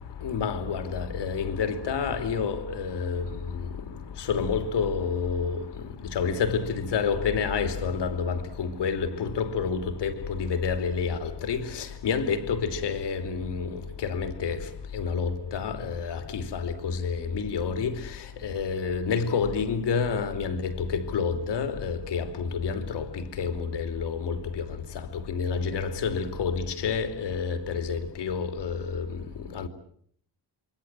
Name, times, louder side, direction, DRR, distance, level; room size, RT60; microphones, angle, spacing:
voice 1, 0.2-3.2 4.3-5.6 6.1-13.7 14.0-14.6 14.9-16.7 17.0-17.9 18.4-23.0 23.4-24.3 25.3-29.0 29.5-29.7, left 5 dB, 75° left, 3.1 m, -28 dB
27.5 x 23.5 x 7.5 m
wide cardioid pair, 165°, 42 cm